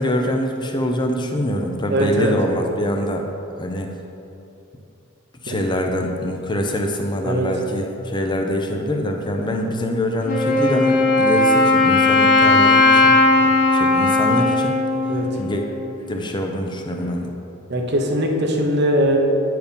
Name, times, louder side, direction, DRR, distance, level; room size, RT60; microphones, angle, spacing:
voice 1, 0.0-3.3 3.6-3.9 5.4-13.2 13.7-14.8 15.3-15.6 16.0-17.3, left 1 dB, 20° left, 3 dB, 0.7 m, -24 dB
voice 2, 1.9-2.3 5.5-5.6 7.2-7.5 15.1-15.3 17.7-19.2, right 1 dB, 55° right, 2 dB, 0.9 m, -20 dB
Wind instrument woodwind instrument, 10.3-16.0, left 3 dB, 40° left, 1.1 m, -17 dB
9.7 x 4.8 x 5.2 m, 2.7 s
head